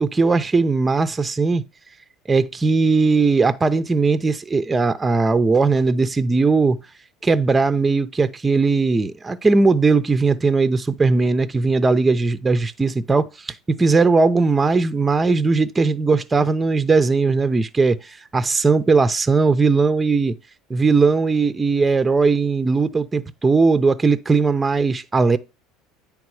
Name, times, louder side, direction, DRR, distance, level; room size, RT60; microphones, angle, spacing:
voice 1, 0.0-1.6 2.3-6.8 7.2-20.3 20.7-25.4, right 4 dB, 20° right, 0.6 m, -18 dB
9.5 x 3.5 x 4.8 m
supercardioid pair, 105°, 0 cm